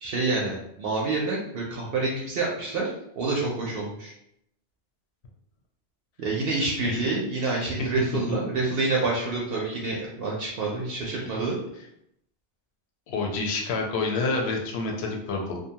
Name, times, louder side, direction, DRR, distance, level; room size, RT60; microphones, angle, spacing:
voice 1, 0.0-2.9 3.2-4.1 6.2-11.5, right 3 dB, 65° right, -3 dB, 0.7 m, -27 dB
voice 2, 13.1-15.6, left 3 dB, 75° left, 1 dB, 0.8 m, -28 dB
2.6 x 2.2 x 2.7 m, 0.76 s
omnidirectional pair, 1.2 m